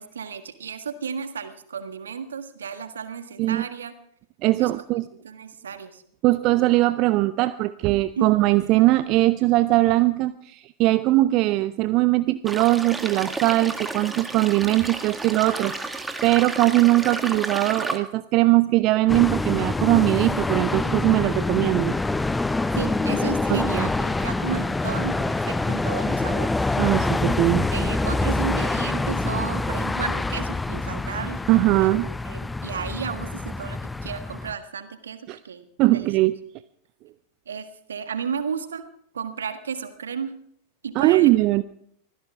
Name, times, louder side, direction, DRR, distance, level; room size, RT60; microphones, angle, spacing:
voice 1, 0.0-3.9 4.6-4.7 5.2-6.0 8.2-8.3 22.8-26.6 27.7-31.4 31.8-31.9 32.2-36.1 37.5-38.9 39.1-40.3 40.8-41.3, right 6 dB, 70° right, 9 dB, 1.6 m, -33 dB
voice 2, 4.4-5.1 6.2-22.0 23.5-23.9 26.8-27.7 31.5-32.1 35.3-35.4 35.8-36.3 41.0-41.6, right 18 dB, 40° right, 14 dB, 0.5 m, -20 dB
sound 1, 12.5-18.0, right 2 dB, 10° right, 1.8 m, -32 dB
sound 2, 19.1-34.5, left 2 dB, 10° left, 0.6 m, -26 dB
24.5 x 16.5 x 3.5 m, 0.67 s
figure-of-eight pair, 90°, 0 cm